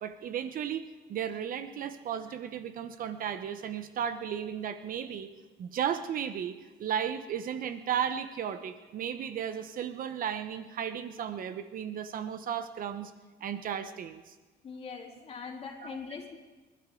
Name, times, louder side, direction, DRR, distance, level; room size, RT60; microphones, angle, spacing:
voice 1, 0.0-5.3 5.6-6.5 6.8-13.1 13.4-14.3, right 8 dB, 55° right, 10 dB, 1.0 m, -34 dB
voice 2, 14.6-16.4, left 5 dB, 40° left, -1 dB, 3.6 m, -42 dB
28.0 x 12.5 x 3.9 m, 1.2 s
cardioid pair, 110°, 17 cm